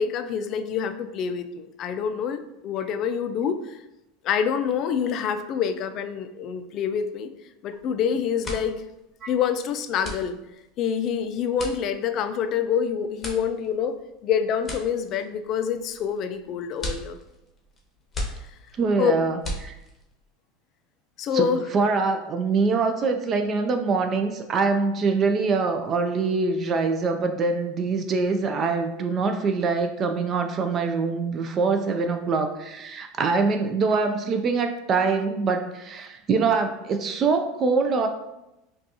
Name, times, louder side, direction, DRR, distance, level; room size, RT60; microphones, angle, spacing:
voice 1, 0.0-3.8 4.2-7.3 7.6-8.8 9.3-10.4 10.8-13.9 14.2-17.2 19.0-19.1 21.2-21.6, left 7 dB, 45° left, 9 dB, 0.3 m, -26 dB
sound 1, 7.7-8.0 8.3-20.2, left 1 dB, 20° left, 0.8 m, -38 dB
voice 2, 18.8-19.8 21.3-21.5 21.7-38.1, right 4 dB, 35° right, 7 dB, 0.4 m, -24 dB
5.1 x 2.3 x 2.8 m, 0.93 s
supercardioid pair, 110°, 0 cm